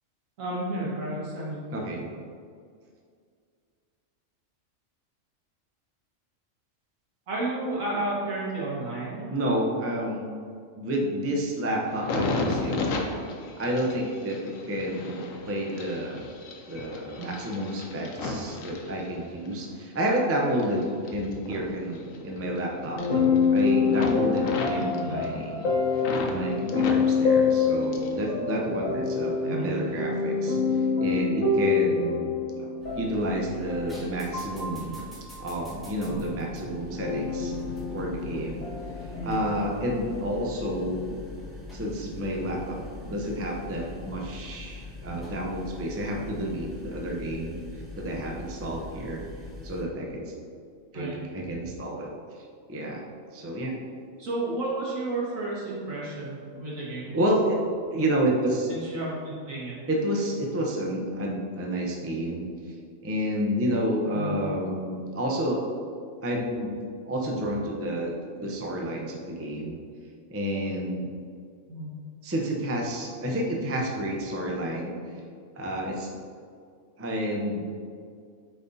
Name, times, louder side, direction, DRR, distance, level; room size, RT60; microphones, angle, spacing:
voice 1, 0.4-1.9 7.3-9.3 24.6-25.2 29.4-29.7 39.1-39.4 50.9-51.2 54.2-57.2 58.7-59.8 64.1-64.3 71.7-71.9, right 2 dB, 80° right, -6 dB, 1.9 m, -32 dB
voice 2, 1.7-2.0 9.3-10.3 10.8-12.9 13.6-16.3 16.7-25.7 26.3-30.6 31.0-32.3 32.9-35.0 35.4-37.5 37.9-38.7 39.2-41.2 41.7-47.6 48.0-49.2 49.6-50.3 50.9-52.1 52.4-53.0 53.3-53.7 57.1-57.6 57.9-58.7 59.9-62.5 63.0-65.7 66.2-66.8 67.1-68.1 68.4-69.8 70.3-71.1 72.2-74.9 75.6-76.1 77.0-77.6, right 1 dB, 20° right, -1 dB, 0.4 m, -30 dB
sound 1, 11.9-19.5 20.0-22.6 22.8-23.6 23.9-26.4 26.7-28.3 28.5-29.3 29.8-30.0, left 2 dB, 85° left, 1.1 m, -35 dB
sound 2, 22.9-35.7 37.0-39.2, left 5 dB, 35° left, 0.9 m, -26 dB
sound 3, 32.8-49.8, left 2 dB, ahead, 1.1 m, -42 dB
8.4 x 4.1 x 2.7 m, 2.2 s
omnidirectional pair, 1.4 m